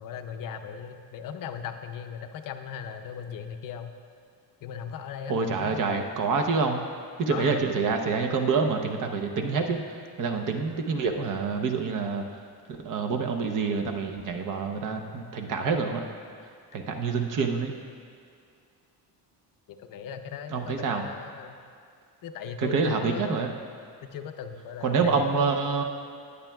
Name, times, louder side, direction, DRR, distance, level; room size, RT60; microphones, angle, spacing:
voice 1, 0.0-3.9 4.6-5.8 7.3-7.7 14.9-15.1 19.8-21.6 22.2-23.4 24.1-25.5, left 7 dB, 50° left, 7 dB, 0.6 m, -38 dB
voice 2, 5.3-6.8 7.2-12.2 12.8-16.1 16.7-17.7 20.5-21.1 22.6-23.5 24.8-25.8, right 4 dB, 50° right, 4 dB, 0.8 m, -27 dB
16.5 x 9.9 x 2.3 m, 2.3 s
cardioid pair, 170°, 41 cm